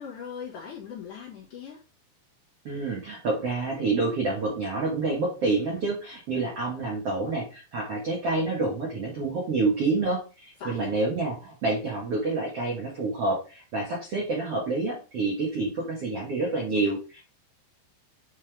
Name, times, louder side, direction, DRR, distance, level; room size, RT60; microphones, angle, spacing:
voice 1, 0.0-1.8 10.6-10.9, left 7 dB, 50° left, -5 dB, 3.1 m, -39 dB
voice 2, 2.6-17.2, right 3 dB, 60° right, -3 dB, 1.6 m, -28 dB
9.5 x 3.6 x 3.4 m, 0.33 s
omnidirectional pair, 5.0 m